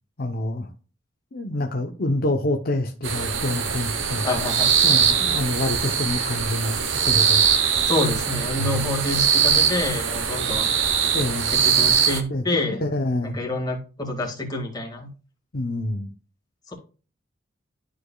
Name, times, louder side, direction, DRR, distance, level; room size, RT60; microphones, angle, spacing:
voice 1, 0.2-0.7 1.3-4.3 4.8-6.8 7.1-7.4 8.6-8.9 11.1-11.5 12.3-12.4 12.8-13.4 15.5-16.1, left 1 dB, 50° left, 2 dB, 0.8 m, -26 dB
sound 1, 3.0-12.2, right 7 dB, 75° right, 1.0 m, -22 dB
voice 2, 4.2-4.7 7.9-10.7 11.5-12.9 13.2-15.1 16.7-16.8, left 2 dB, 20° left, -1 dB, 2.0 m, -27 dB
12.0 x 4.9 x 2.3 m, 0.36 s
head